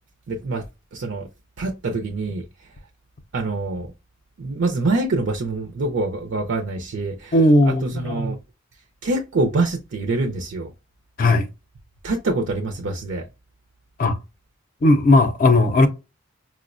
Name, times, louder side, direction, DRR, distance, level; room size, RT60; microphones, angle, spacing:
voice 1, 0.3-0.6 0.9-1.3 1.6-2.7 3.3-3.9 4.4-7.4 7.6-8.4 9.0-10.7 12.0-13.2, right 2 dB, 65° right, 0.5 m, -25 dB
voice 2, 7.3-8.1 11.2-11.5 14.0-14.2 14.8-15.9, left 2 dB, 45° left, 0.4 m, -16 dB
4.6 x 2.1 x 2.4 m
head